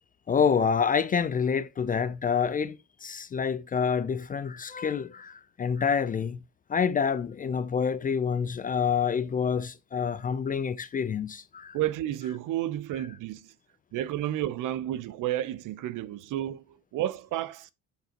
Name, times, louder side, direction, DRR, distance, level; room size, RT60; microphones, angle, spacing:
voice 1, 0.3-6.4 6.7-11.8, left 6 dB, 25° left, 0.4 m, -27 dB
voice 2, 11.7-13.5 13.9-17.7, right 13 dB, 65° right, 0.6 m, -31 dB
8.9 x 5.3 x 2.8 m
cardioid pair, 120°, 34 cm